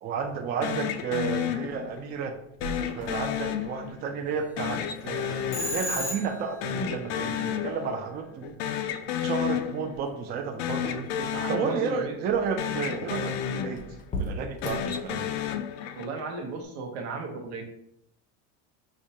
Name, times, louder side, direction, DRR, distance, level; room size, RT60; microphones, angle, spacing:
voice 1, 0.0-2.4 2.8-8.5 9.2-11.1 11.5-13.8 14.2-15.4, right 6 dB, 30° right, 4 dB, 0.4 m, -32 dB
sound 1, 0.6-2.1 2.6-4.2 4.6-6.4 6.6-8.1 8.4-10.1 10.5-12.3 12.6-14.2 14.5-16.3, left 9 dB, 70° left, 0.4 m, -32 dB
sound 2, 1.6-15.6, equal, 25° left, 0.6 m, -43 dB
Telephone, 5.5-6.6, left 1 dB, 85° left, 1.0 m, -32 dB
voice 2, 11.2-12.2 16.0-17.6, right 4 dB, 85° right, 3 dB, 0.9 m, -35 dB
4.9 x 2.1 x 2.7 m, 0.76 s
supercardioid pair, 125°, 32 cm